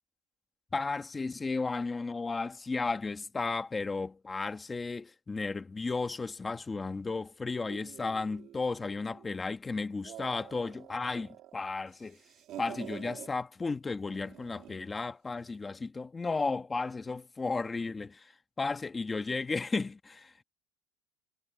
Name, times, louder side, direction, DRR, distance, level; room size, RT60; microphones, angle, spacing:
voice 1, 0.7-12.2 12.6-18.3 18.6-20.4, left 3 dB, 10° left, 1.3 m, -34 dB
sound 1, 7.7-9.4 9.9-11.5 11.9-13.3 14.1-14.9, right 12 dB, 40° right, 2.2 m, -48 dB
cardioid pair, 165°, 0 cm